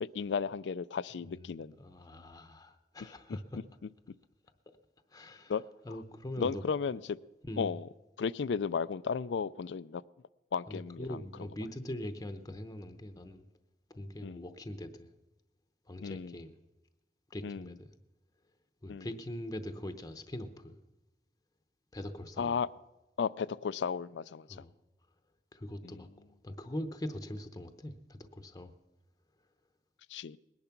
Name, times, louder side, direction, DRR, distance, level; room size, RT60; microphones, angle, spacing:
voice 1, 0.0-1.8 5.5-5.6 6.4-7.2 7.6-7.9 8.2-10.0 10.5-11.2 14.2-14.4 16.0-16.4 17.4-17.7 18.9-19.1 22.4-22.7 23.2-24.5 25.8-26.0 30.1-30.4, left 6 dB, 85° left, 19 dB, 0.4 m, -34 dB
voice 2, 1.3-3.6 5.1-5.5 5.8-6.6 7.4-7.8 10.7-13.5 13.9-15.1 15.9-16.5 17.3-17.9 18.8-20.8 21.9-22.6 24.5-24.7 25.5-26.1 26.4-28.7, left 1 dB, 20° left, 8 dB, 0.8 m, -42 dB
19.5 x 10.5 x 5.9 m, 1.0 s
head